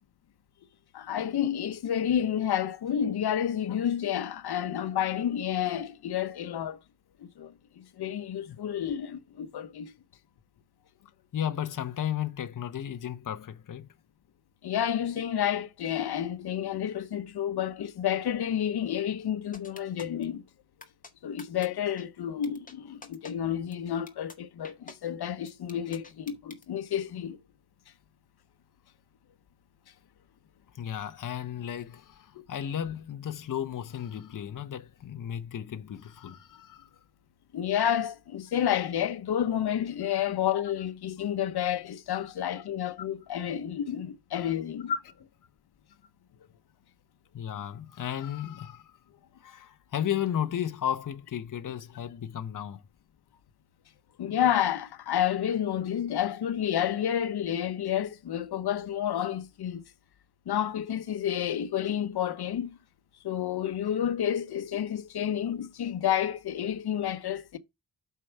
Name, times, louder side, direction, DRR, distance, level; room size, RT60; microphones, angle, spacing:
voice 1, 0.9-6.8 7.2-9.9 14.6-20.4 21.2-27.4 32.3-32.4 37.5-45.0 54.2-59.8 60.5-62.7 63.2-67.6, left 10 dB, 90° left, 1.0 m, -30 dB
voice 2, 11.3-13.9 30.7-36.9 42.2-42.3 47.3-48.9 49.4-52.8, left 10 dB, 55° left, 0.9 m, -34 dB
sound 1, 19.5-20.2 20.8-21.1 21.4-21.7 22.0-22.1 22.4-22.7 23.0-23.3 23.7-23.8 24.1-24.4 24.6-25.0 25.5-26.6, left 3 dB, 20° left, 1.8 m, -46 dB
8.4 x 5.7 x 4.6 m
wide cardioid pair, 130°, 38 cm